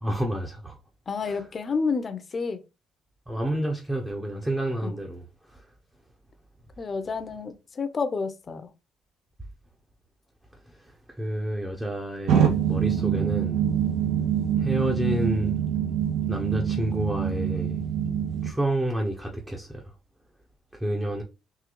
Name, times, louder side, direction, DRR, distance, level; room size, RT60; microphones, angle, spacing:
voice 1, 0.0-0.8 1.3-1.4 3.3-5.3 11.2-13.6 14.6-15.6 16.3-17.8 18.4-19.8 20.7-21.2, right 1 dB, 10° right, 0.6 m, -29 dB
voice 2, 1.1-2.6 4.8-5.0 6.8-8.7, left 4 dB, 35° left, 0.5 m, -30 dB
sound 1, 12.3-18.5, right 9 dB, 75° right, 0.7 m, -25 dB
3.7 x 2.7 x 3.0 m
cardioid pair, 110°, 0 cm